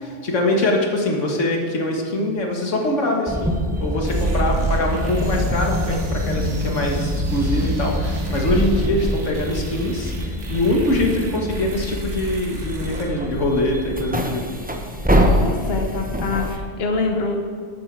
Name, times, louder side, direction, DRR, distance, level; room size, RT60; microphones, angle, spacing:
voice 1, 0.0-3.5 3.8-14.4, left 1 dB, 85° left, 0 dB, 1.9 m, -23 dB
sound 1, 3.3-16.6, equal, 10° right, 0.8 m, -25 dB
sound 2, 4.0-14.0, right 2 dB, 75° right, 1.7 m, -30 dB
voice 2, 15.4-17.3, left 4 dB, 55° left, 2 dB, 1.3 m, -25 dB
12.5 x 9.0 x 4.8 m, 2.1 s
omnidirectional pair, 1.2 m